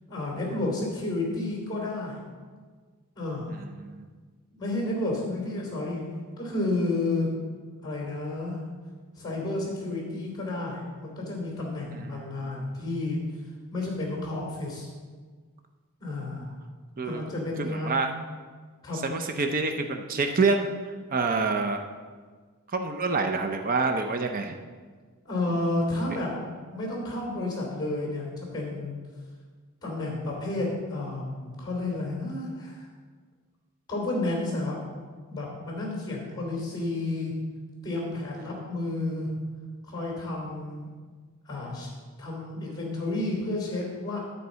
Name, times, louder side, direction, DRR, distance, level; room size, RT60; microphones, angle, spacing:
voice 1, 0.1-2.2 3.1-3.5 4.6-6.0 6.4-7.3 7.8-8.6 9.2-13.2 13.7-14.9 16.0-16.5 17.0-18.1 18.8-19.0 25.2-26.3 26.7-29.0 29.8-32.9 33.9-34.8 35.3-37.3 37.8-39.3 39.9-40.9 41.4-41.9 42.2-44.2, left 2 dB, 20° left, -1 dB, 3.0 m, -31 dB
voice 2, 3.5-4.0 11.9-12.5 16.2-16.3 17.0-17.2 17.6-18.1 19.0-20.7 21.1-21.8 22.7-24.6, right 4 dB, 40° right, 5 dB, 0.6 m, -27 dB
9.6 x 4.6 x 7.4 m, 1.5 s
head